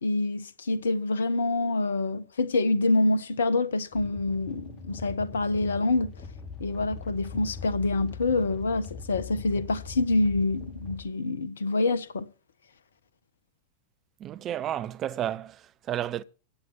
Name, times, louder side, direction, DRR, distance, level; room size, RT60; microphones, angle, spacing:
voice 1, 0.0-6.1 6.6-12.3, left 2 dB, 70° left, 1.2 m, -26 dB
sound 1, 3.9-11.1, left 5 dB, 30° left, 3.0 m, -42 dB
voice 2, 14.2-16.2, right 11 dB, 30° right, 0.8 m, -32 dB
15.5 x 9.4 x 6.0 m
figure-of-eight pair, 90°, 0 cm